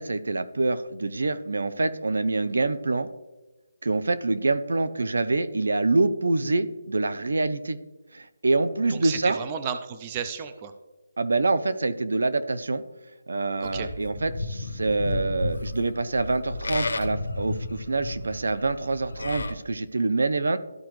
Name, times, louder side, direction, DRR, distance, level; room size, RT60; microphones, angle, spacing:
voice 1, 0.0-3.1 3.8-7.8 8.1-9.4 11.2-12.8 13.3-20.6, right 3 dB, 80° right, 12 dB, 0.6 m, -26 dB
voice 2, 8.9-10.7 13.6-13.9, right 7 dB, 20° right, 9 dB, 0.4 m, -33 dB
Livestock farm animals working animals, 13.6-19.5, left 2 dB, 80° left, 1.0 m, -33 dB
13.5 x 4.7 x 3.1 m, 1.1 s
hypercardioid pair, 175°, 0 cm